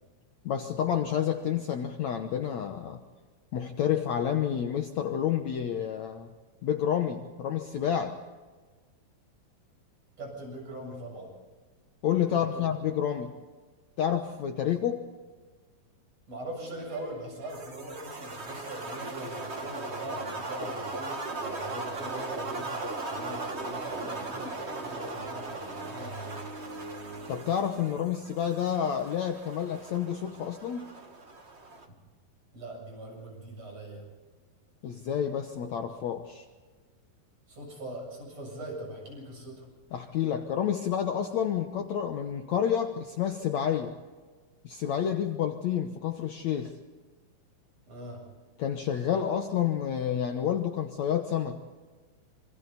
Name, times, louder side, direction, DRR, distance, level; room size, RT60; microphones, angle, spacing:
voice 1, 0.5-3.0 3.5-6.3 6.6-8.2 12.0-13.3 14.0-15.1 27.3-30.9 34.8-36.4 39.9-44.0 44.6-46.8 48.6-51.6, left 9 dB, 70° left, 5 dB, 1.8 m, -29 dB
voice 2, 10.2-11.4 12.3-12.7 16.3-26.4 31.9-32.0 32.5-34.0 37.5-39.7 47.9-48.3, right 1 dB, 40° right, 0 dB, 8.6 m, -41 dB
sound 1, 16.6-28.0, right 2 dB, 80° right, 4.7 m, -47 dB
sound 2, 17.5-31.9, right 2 dB, 65° right, 0.6 m, -38 dB
26.5 x 26.0 x 4.1 m, 1.4 s
omnidirectional pair, 4.4 m